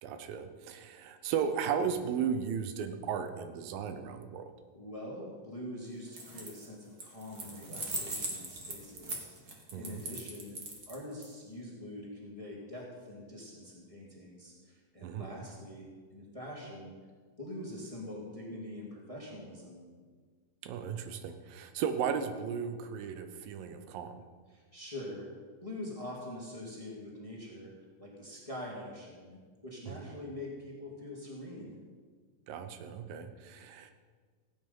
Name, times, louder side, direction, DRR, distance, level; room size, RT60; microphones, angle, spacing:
voice 1, 0.0-4.4 9.7-10.1 15.0-15.3 20.6-24.1 29.9-30.1 32.5-34.0, right 7 dB, 85° right, 8 dB, 2.5 m, -35 dB
voice 2, 4.7-10.6 10.9-15.9 16.1-16.9 17.4-19.9 24.5-25.3 25.6-27.7 28.0-31.8, left 1 dB, 10° left, -3 dB, 2.0 m, -44 dB
sound 1, 6.1-6.7 7.0-11.2, right 2 dB, 35° right, 1.7 m, -40 dB
16.0 x 8.9 x 5.5 m, 1.6 s
omnidirectional pair, 4.0 m